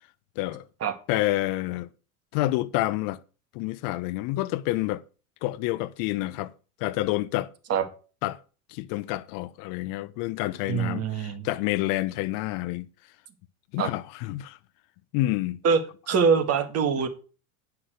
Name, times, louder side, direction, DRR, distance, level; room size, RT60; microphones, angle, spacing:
voice 1, 0.4-0.7 1.1-1.9 2.3-3.2 3.5-5.0 5.4-6.5 6.8-7.5 8.2-8.4 8.7-12.9 13.7-14.6 15.1-15.6, left 17 dB, 50° left, 0.7 m, -28 dB
voice 2, 10.7-11.5 13.8-13.9 15.6-15.8 16.1-17.1, right 6 dB, 35° right, 2.0 m, -23 dB
9.8 x 5.9 x 6.5 m
supercardioid pair, 120°, 43 cm